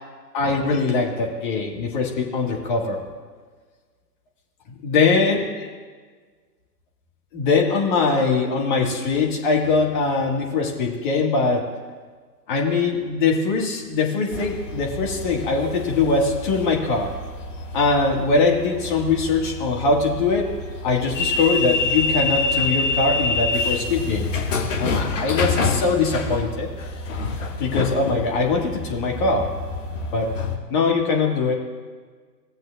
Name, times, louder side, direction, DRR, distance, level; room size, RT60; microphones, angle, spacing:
voice 1, 0.3-3.0 4.8-5.4 7.3-11.7 12.5-17.1 17.7-20.5 20.8-24.3 24.8-26.7 27.6-29.5 30.1-30.3 30.7-31.5, left 4 dB, 30° left, 0 dB, 1.5 m, -22 dB
sound 1, 14.3-30.6, left 3 dB, 45° left, 1.3 m, -27 dB
17.0 x 7.7 x 2.3 m, 1.5 s
figure-of-eight pair, 135°, 50 cm